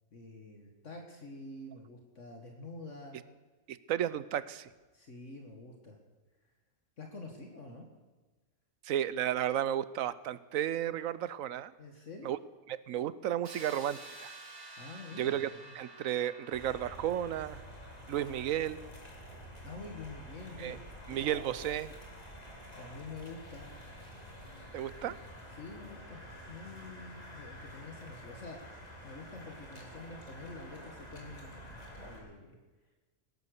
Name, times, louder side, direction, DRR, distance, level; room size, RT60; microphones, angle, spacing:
voice 1, 0.1-3.2 4.9-6.0 7.0-7.9 11.8-12.4 14.8-15.7 19.6-20.8 21.1-21.2 22.8-23.8 25.1-25.2 25.5-26.2 26.5-28.6 29.0-31.8 32.0-32.6, left 3 dB, 60° left, 2 dB, 2.1 m, -47 dB
voice 2, 3.7-4.7 8.8-11.7 12.2-12.4 12.7-14.3 15.2-15.5 15.8-17.6 18.1-18.8 20.6-20.8 21.1-21.9 24.7-25.1, right 11 dB, 80° right, 16 dB, 1.1 m, -33 dB
sound 1, 13.4-19.2, right 2 dB, 45° right, 2.6 m, -51 dB
sound 2, 16.5-32.2, equal, 30° left, 2.9 m, -49 dB
18.5 x 11.0 x 6.6 m, 1.3 s
omnidirectional pair, 1.4 m